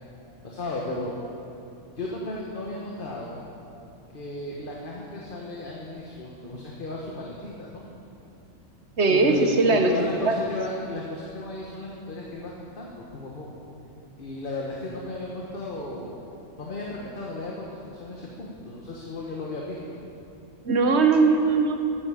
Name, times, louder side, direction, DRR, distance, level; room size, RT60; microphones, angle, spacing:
voice 1, 0.4-1.1 1.9-3.4 4.1-7.8 9.1-13.5 14.2-16.2 16.6-20.0, left 2 dB, 45° left, -3 dB, 1.4 m, -34 dB
voice 2, 9.0-9.9 20.6-21.8, right 4 dB, 65° right, 5 dB, 1.4 m, -20 dB
15.0 x 10.0 x 5.0 m, 2.7 s
omnidirectional pair, 1.2 m